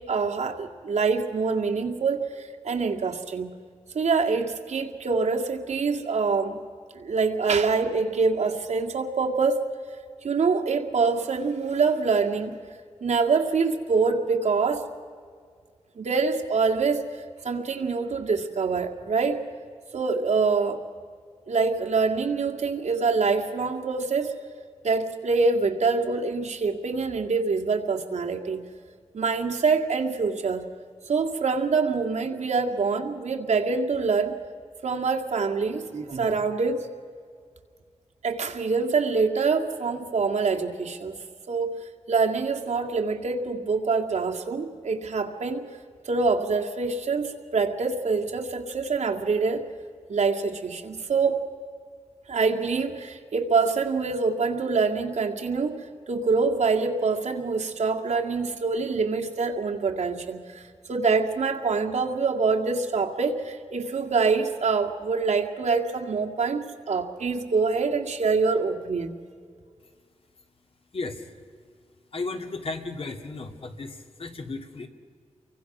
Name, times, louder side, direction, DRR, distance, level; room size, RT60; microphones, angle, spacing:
voice 1, 0.0-3.5 3.9-6.6 6.9-9.7 10.2-12.6 13.0-14.9 16.0-17.1 17.4-19.4 19.9-20.8 21.5-24.3 24.8-28.6 29.1-30.7 31.1-34.4 34.8-36.9 38.2-41.2 41.5-45.7 46.0-49.7 50.1-51.5 52.3-69.1, right 4 dB, 80° right, 2 dB, 2.1 m, -25 dB
voice 2, 70.9-71.2 72.1-74.9, left 3 dB, 55° left, 5 dB, 2.3 m, -34 dB
29.5 x 24.0 x 6.0 m, 2.1 s
wide cardioid pair, 130°, 12 cm